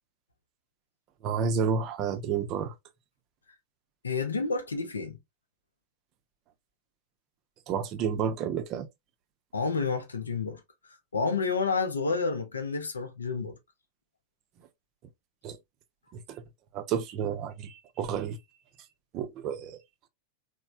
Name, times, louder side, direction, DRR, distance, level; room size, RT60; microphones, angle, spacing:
voice 1, 1.2-2.7 7.7-8.9 15.4-15.6 16.1-16.4 16.7-18.4 19.1-19.8, right 6 dB, 35° right, 0.5 m, -30 dB
voice 2, 4.0-5.2 9.5-10.6 11.1-13.6, left 4 dB, 75° left, 0.4 m, -29 dB
3.1 x 2.0 x 2.4 m
figure-of-eight pair, 90°, 0 cm